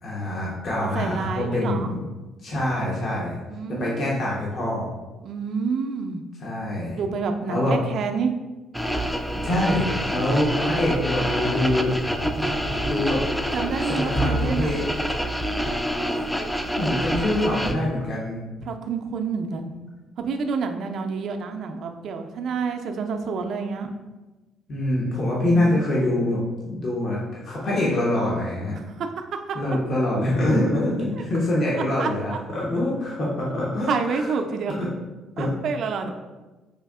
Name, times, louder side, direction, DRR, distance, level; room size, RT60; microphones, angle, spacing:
voice 1, 0.0-2.0 2.4-3.4 3.7-4.9 6.4-7.0 7.5-7.8 9.4-12.0 12.4-13.2 13.9-14.9 16.8-18.5 24.7-26.4 26.6-28.7 29.5-34.3 35.4-35.5 36.0-36.1, left 1 dB, 55° left, -5 dB, 0.9 m, -25 dB
voice 2, 0.8-1.9 3.5-4.2 5.2-6.2 6.9-8.3 13.5-14.8 18.6-19.7 20.2-23.9 25.4-25.9 28.9-29.1 29.5-29.6 31.2-31.3 32.0-32.4 33.5-33.6 33.9-34.7 35.4-36.1, right 5 dB, 65° right, 5 dB, 0.4 m, -28 dB
sound 1, 8.7-17.7, equal, 5° left, 0.3 m, -26 dB
4.9 x 2.6 x 2.4 m, 1.2 s
supercardioid pair, 70°, 0 cm